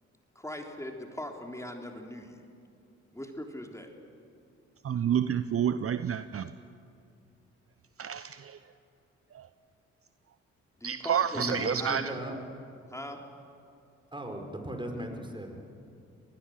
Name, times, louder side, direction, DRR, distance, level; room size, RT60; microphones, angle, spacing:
voice 1, 0.4-2.4 3.1-3.9 10.8-12.3 12.9-13.2, left 1 dB, 10° left, 3.5 m, -40 dB
voice 2, 4.8-6.5 8.0-8.6 9.3-9.5 10.8-12.1, right 8 dB, 45° right, 0.8 m, -29 dB
voice 3, 11.3-12.4 14.1-15.7, right 1 dB, 15° right, 5.0 m, -37 dB
24.5 x 19.5 x 7.8 m
hypercardioid pair, 45°, 32 cm